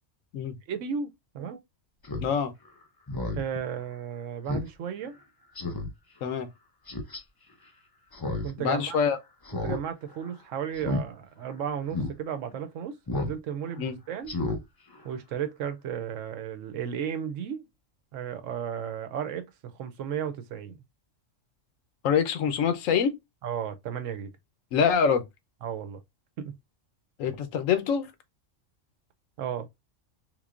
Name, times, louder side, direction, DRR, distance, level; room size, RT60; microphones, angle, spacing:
voice 1, 0.7-1.6 3.3-5.2 8.4-9.0 9.6-14.3 15.0-17.7 18.1-20.8 23.4-24.3 25.6-26.0 26.4-26.5 29.4-29.7, right 8 dB, 80° right, 1.0 m, -34 dB
Speech synthesizer, 2.0-2.3 2.7-2.8 3.1-3.4 3.8-3.9 4.5-4.7 5.0-5.1 5.6-5.9 6.9-7.2 8.1-8.5 8.8-8.9 9.5-9.8 10.1-10.3 10.8-11.0 11.5-11.6 11.9-12.1 13.1-13.4 13.7-13.8 14.2-14.6 14.9-15.0, left 2 dB, 25° left, 0.5 m, -31 dB
voice 2, 2.2-2.5 6.2-6.5 8.6-9.2 13.8-14.0 22.0-23.2 24.7-25.2 27.2-28.1, left 7 dB, 90° left, 1.1 m, -25 dB
3.6 x 3.1 x 2.4 m
omnidirectional pair, 1.3 m